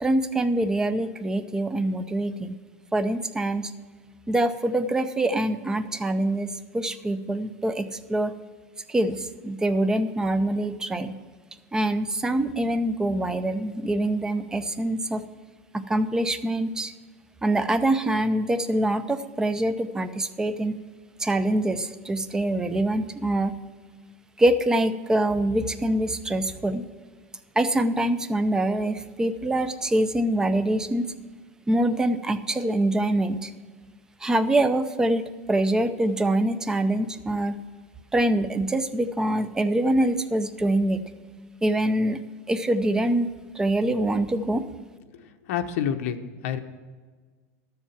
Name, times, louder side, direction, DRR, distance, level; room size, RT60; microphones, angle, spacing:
voice 1, 0.0-2.5 2.9-3.7 4.3-8.3 8.9-11.1 11.7-15.2 15.7-16.9 17.4-20.8 21.2-23.5 24.4-26.8 27.6-31.1 31.7-33.5 34.2-37.6 38.1-41.0 41.6-42.2 42.5-43.3 43.6-44.6, right 1 dB, 10° right, 11 dB, 0.5 m, -24 dB
voice 2, 45.5-46.2 46.4-46.6, left 9 dB, 70° left, 7 dB, 1.0 m, -27 dB
12.5 x 7.3 x 5.9 m, 1.5 s
supercardioid pair, 160°, 8 cm